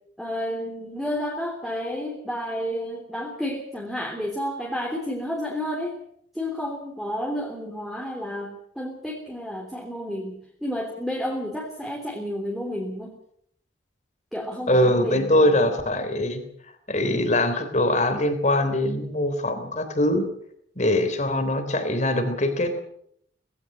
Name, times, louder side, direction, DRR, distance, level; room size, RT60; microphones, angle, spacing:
voice 1, 0.2-6.0 6.3-13.1 14.3-15.6, equal, ahead, -1 dB, 3.2 m, -31 dB
voice 2, 14.7-16.4 16.9-20.3 20.8-22.8, left 1 dB, 40° left, 8 dB, 3.4 m, -22 dB
19.5 x 16.0 x 8.7 m, 0.69 s
head